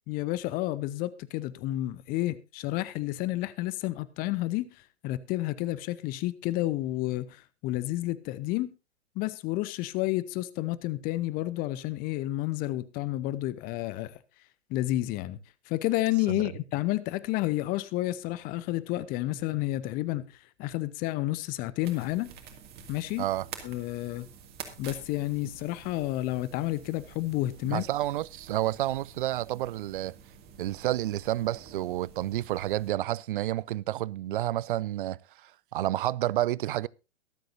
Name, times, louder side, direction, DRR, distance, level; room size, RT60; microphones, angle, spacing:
voice 1, 0.1-4.7 5.0-8.7 9.2-14.2 14.7-15.4 15.7-22.3 22.9-23.3 23.6-24.3 24.8-27.8, left 16 dB, 25° left, 0.7 m, -30 dB
sound 1, 21.8-32.9, right 7 dB, 25° right, 2.3 m, -49 dB
voice 2, 27.6-30.2 30.6-36.9, right 14 dB, 50° right, 0.5 m, -30 dB
23.0 x 7.8 x 2.6 m
figure-of-eight pair, 110°, 35 cm